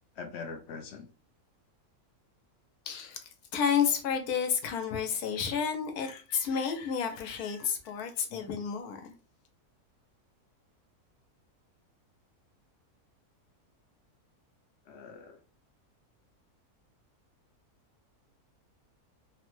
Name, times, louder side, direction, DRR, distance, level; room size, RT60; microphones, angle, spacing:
voice 1, 0.2-1.1 8.3-8.4 14.9-15.4, left 5 dB, 65° left, 0.6 m, -42 dB
voice 2, 2.9-9.1, left 7 dB, 80° left, 1.1 m, -31 dB
3.2 x 2.1 x 3.0 m
omnidirectional pair, 1.6 m